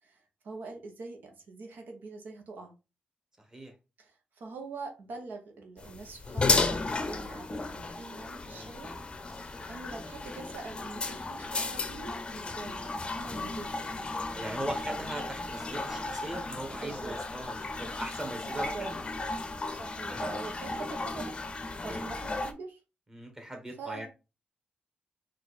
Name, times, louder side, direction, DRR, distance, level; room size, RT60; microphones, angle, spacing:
voice 1, 0.0-2.7 4.0-13.7 16.8-17.1 18.5-18.9 19.7-21.3 21.8-22.8 23.8-24.1, right 3 dB, 75° right, 1.0 m, -44 dB
sound 1, 5.8-22.5, left 3 dB, 30° left, 0.6 m, -34 dB
voice 2, 14.2-19.0 19.6-19.8 20.1-20.2 21.9-22.0 23.1-24.1, right 1 dB, 20° right, 1.4 m, -40 dB
4.4 x 2.5 x 4.0 m
cardioid pair, 105°, 3 cm